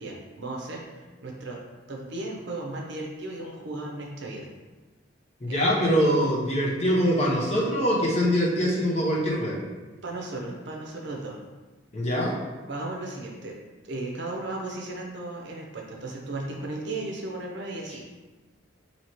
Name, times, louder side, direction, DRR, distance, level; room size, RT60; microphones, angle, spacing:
voice 1, 0.0-1.6 1.9-4.5 5.5-5.6 10.0-11.4 12.7-13.6 13.8-18.0, right 2 dB, 60° right, 0 dB, 0.6 m, -35 dB
voice 2, 5.4-9.6 11.9-12.4, equal, 30° left, -3 dB, 0.6 m, -23 dB
2.9 x 2.8 x 4.3 m, 1.3 s
head